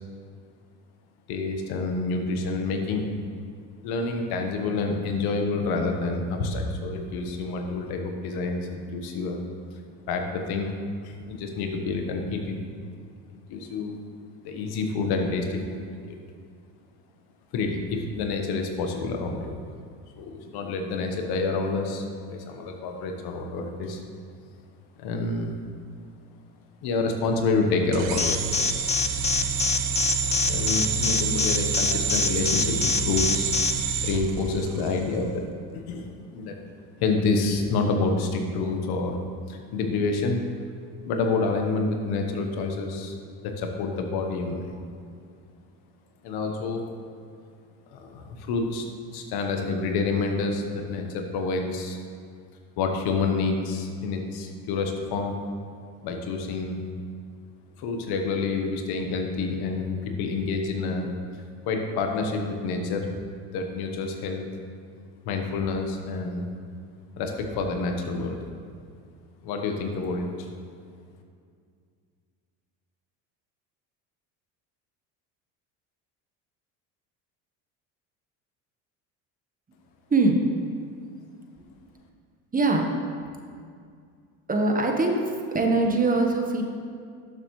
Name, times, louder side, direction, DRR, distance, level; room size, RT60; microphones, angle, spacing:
voice 1, 1.3-3.1 3.8-9.4 10.1-10.7 11.0-12.6 13.3-14.0 14.4-16.0 17.5-19.5 20.2-24.0 25.0-25.5 26.8-28.6 30.5-33.5 34.0-35.5 35.7-36.1 36.3-36.6 37.0-39.2 39.5-40.4 41.0-43.1 43.4-44.7 46.2-46.8 47.9-48.8 49.1-52.0 52.8-55.4 56.0-56.8 57.8-61.1 61.6-63.1 63.5-64.4 65.2-66.5 67.2-68.4 69.4-70.5, left 3 dB, 65° left, 3 dB, 1.3 m, -28 dB
sound 1, 27.9-35.0, right 6 dB, 80° right, 0.9 m, -28 dB
Alarm, 28.2-33.7, left 6 dB, 15° left, 0.5 m, -24 dB
voice 2, 80.1-80.4 81.6-81.7 82.5-82.9 83.2-83.3 84.5-85.2 85.5-86.6, right 3 dB, 20° right, 2 dB, 1.2 m, -22 dB
12.0 x 6.9 x 3.2 m, 2.2 s
supercardioid pair, 85°, 40 cm